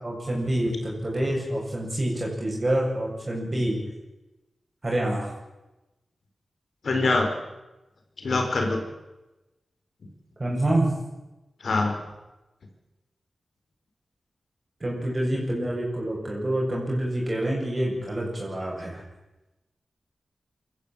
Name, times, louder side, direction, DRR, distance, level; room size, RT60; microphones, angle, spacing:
voice 1, 0.0-3.8 4.8-5.3 10.4-10.9 14.8-19.0, right 1 dB, 35° right, -3 dB, 7.1 m, -27 dB
voice 2, 6.8-7.4 8.2-8.8 11.6-12.0, left 3 dB, 70° left, 4 dB, 4.6 m, -24 dB
24.0 x 14.0 x 9.0 m, 1.0 s
cardioid pair, 70°, 0 cm